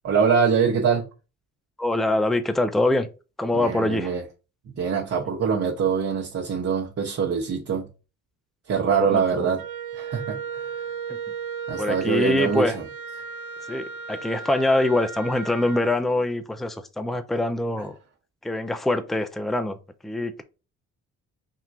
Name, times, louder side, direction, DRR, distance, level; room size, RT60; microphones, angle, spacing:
voice 1, 0.0-1.0 3.5-4.2 4.7-7.9 8.7-9.6 9.9-10.7 11.7-12.8, right 6 dB, 50° right, 1.1 m, -24 dB
voice 2, 1.8-3.1 3.4-4.1 5.4-5.5 8.9-9.5 11.8-12.8 13.7-18.0 18.4-19.8 20.0-20.4, left 1 dB, ahead, 0.5 m, -24 dB
Wind instrument woodwind instrument, 9.6-16.0, right 6 dB, 80° right, 0.7 m, -35 dB
3.8 x 2.9 x 4.6 m
cardioid pair, 90°, 30 cm